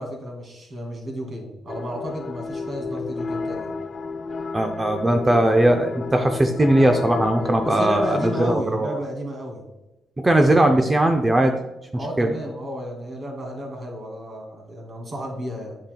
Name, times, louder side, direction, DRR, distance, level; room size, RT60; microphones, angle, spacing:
voice 1, 0.0-3.7 7.6-9.6 11.9-15.8, equal, 45° right, 0 dB, 2.3 m, -32 dB
sound 1, 1.7-8.6, left 4 dB, 40° left, 0.4 m, -32 dB
voice 2, 4.5-9.0 10.2-11.5 12.2-12.3, right 1 dB, 20° right, 4 dB, 0.5 m, -19 dB
8.6 x 5.7 x 2.3 m, 1.0 s
cardioid pair, 90°, 0 cm